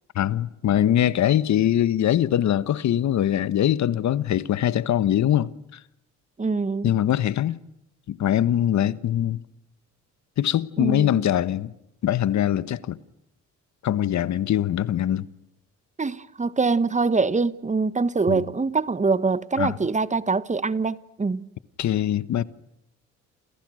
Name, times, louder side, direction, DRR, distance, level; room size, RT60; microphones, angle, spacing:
voice 1, 0.1-5.5 6.8-7.6 8.1-9.4 10.4-11.7 12.0-13.0 13.8-15.3 18.3-18.5 19.6-19.7 21.8-22.4, left 11 dB, 65° left, 1.3 m, -22 dB
voice 2, 6.4-7.0 10.8-11.2 16.0-21.5, right 4 dB, 25° right, 1.3 m, -24 dB
30.0 x 28.5 x 6.4 m
cardioid pair, 90°, 30 cm